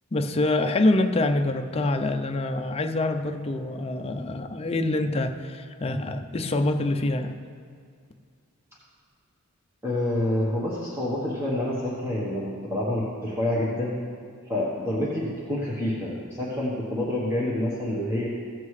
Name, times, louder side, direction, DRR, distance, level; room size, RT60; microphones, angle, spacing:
voice 1, 0.1-7.4, left 2 dB, 25° left, 5 dB, 0.5 m, -25 dB
voice 2, 9.8-14.0 14.5-18.3, left 1 dB, 10° right, -7 dB, 1.1 m, -27 dB
16.0 x 7.6 x 3.2 m, 2.2 s
head